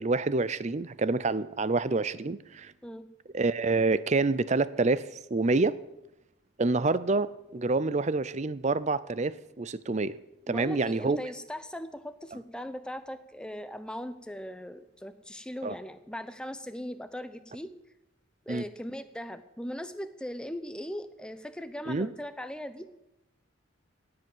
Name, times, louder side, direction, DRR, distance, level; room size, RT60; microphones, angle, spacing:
voice 1, 0.0-2.7 3.3-5.0 5.3-5.8 6.6-10.2 10.5-11.2 15.6-15.7 18.5-18.6 21.9-22.1, right 3 dB, 35° right, 17 dB, 0.5 m, -27 dB
voice 2, 10.5-17.7 18.5-22.9, equal, 5° left, 10 dB, 0.7 m, -39 dB
17.5 x 7.8 x 7.3 m, 0.90 s
head